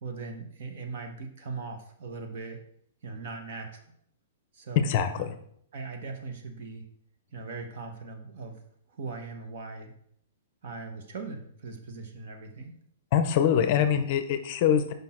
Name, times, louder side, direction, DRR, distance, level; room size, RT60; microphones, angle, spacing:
voice 1, 0.0-2.6 3.0-3.8 4.5-5.3 5.7-6.8 7.3-8.6 8.9-9.9 10.6-12.7, right 4 dB, 50° right, 4 dB, 1.2 m, -39 dB
voice 2, 4.8-5.3 13.1-14.9, left 8 dB, 40° left, 9 dB, 0.6 m, -24 dB
6.1 x 5.3 x 4.4 m, 0.67 s
hypercardioid pair, 165°, 0 cm